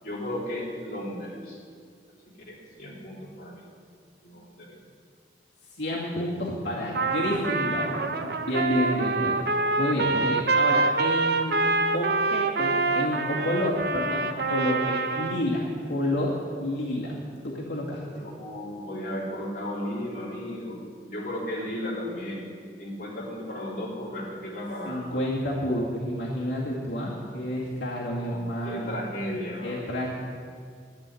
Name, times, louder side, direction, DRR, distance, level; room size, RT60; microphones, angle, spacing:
voice 1, 0.0-1.6 2.5-3.6 4.2-4.8 18.1-20.8 21.1-22.5 22.8-25.1 28.2-29.8, left 1 dB, 50° left, -5 dB, 3.4 m, -35 dB
voice 2, 5.8-11.6 11.9-15.6 15.9-16.3 16.6-17.2 17.4-18.0 24.9-28.9 29.6-30.2, left 1 dB, 80° left, -5 dB, 2.2 m, -29 dB
Trumpet, 6.9-15.5, right 3 dB, 60° right, 0.7 m, -26 dB
11.5 x 7.8 x 9.8 m, 2.1 s
head